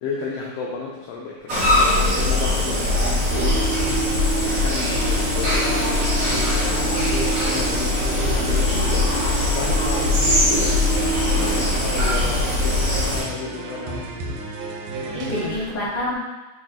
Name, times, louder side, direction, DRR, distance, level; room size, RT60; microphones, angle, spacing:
voice 1, 0.0-3.2 4.4-10.3 11.3-14.1 15.0-15.5, left 4 dB, 85° left, -3 dB, 1.4 m, -33 dB
sound 1, 1.5-13.2, left 1 dB, 55° right, 1.2 m, -21 dB
voice 2, 1.6-2.3 10.5-11.7 15.1-16.2, left 1 dB, 60° left, -9 dB, 0.5 m, -31 dB
sound 2, 6.2-15.6, right 3 dB, 80° right, 1.9 m, -35 dB
4.3 x 3.1 x 3.6 m, 1.1 s
omnidirectional pair, 3.4 m